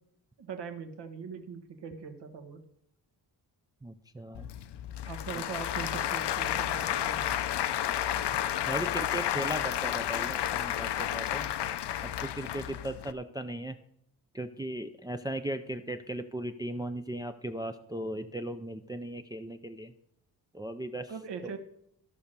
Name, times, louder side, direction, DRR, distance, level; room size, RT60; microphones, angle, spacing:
voice 1, 0.4-2.6 5.1-7.4 21.1-21.6, right 5 dB, 80° right, 6 dB, 1.6 m, -41 dB
voice 2, 3.8-4.5 8.7-11.5 12.0-13.8 14.3-19.9 20.5-21.1 21.4-21.5, right 1 dB, 10° right, 7 dB, 0.4 m, -37 dB
Applause / Crowd, 4.3-13.1, left 11 dB, 75° left, 0.7 m, -31 dB
14.0 x 5.7 x 6.7 m, 0.73 s
wide cardioid pair, 170°, 41 cm